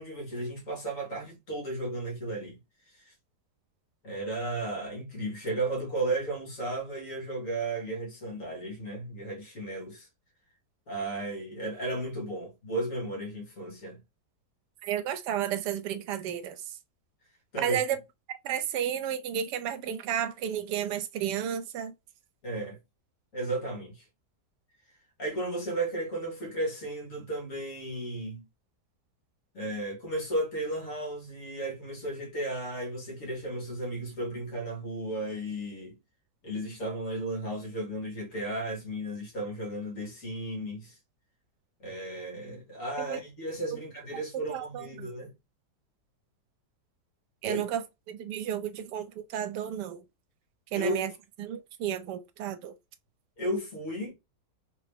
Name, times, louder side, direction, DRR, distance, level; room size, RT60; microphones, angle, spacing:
voice 1, 0.0-2.6 2.9-3.1 4.0-10.1 10.9-14.0 17.5-17.8 22.4-22.8 23.3-24.0 25.2-28.4 29.5-36.0 36.4-41.0 41.8-45.3 47.4-47.6 50.7-51.0 53.4-54.1, right 1 dB, 50° left, 1.9 m, -34 dB
voice 2, 14.8-16.8 17.6-18.0 18.3-21.9 43.0-43.2 43.7-43.8 44.3-45.1 47.4-50.0 50.7-51.1 51.4-52.7, right 9 dB, 80° right, 1.2 m, -32 dB
3.5 x 2.8 x 3.5 m
omnidirectional pair, 1.8 m